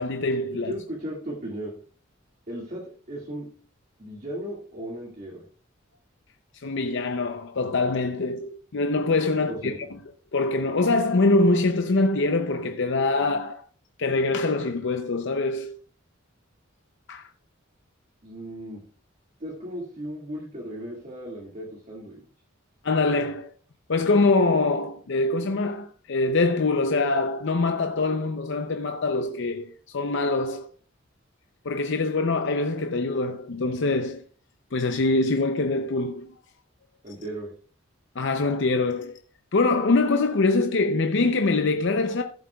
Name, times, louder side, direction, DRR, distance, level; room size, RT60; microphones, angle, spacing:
voice 1, 0.0-0.7 6.6-9.7 10.3-13.6 14.0-15.8 17.1-17.3 22.8-23.5 23.9-30.7 31.6-34.2 34.7-36.3 38.2-39.2 39.5-42.2, left 3 dB, 60° left, 0.6 m, -24 dB
voice 2, 0.5-1.7 2.5-3.5 4.0-5.4 9.3-9.9 18.2-18.8 19.4-22.2 37.0-37.5, right 1 dB, 40° right, 2.2 m, -36 dB
14.5 x 7.5 x 2.3 m
head